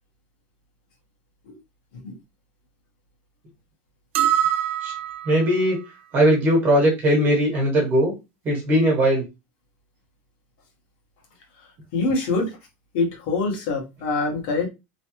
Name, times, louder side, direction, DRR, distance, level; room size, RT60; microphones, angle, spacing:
sound 1, 4.1-5.5, right 11 dB, 85° right, 0.4 m, -23 dB
voice 1, 5.2-5.8 6.1-8.1 8.4-9.2, equal, 30° right, 1.4 m, -19 dB
voice 2, 11.9-12.6 12.9-14.7, left 3 dB, 60° left, 1.4 m, -24 dB
3.1 x 2.3 x 3.0 m
supercardioid pair, 170°, 7 cm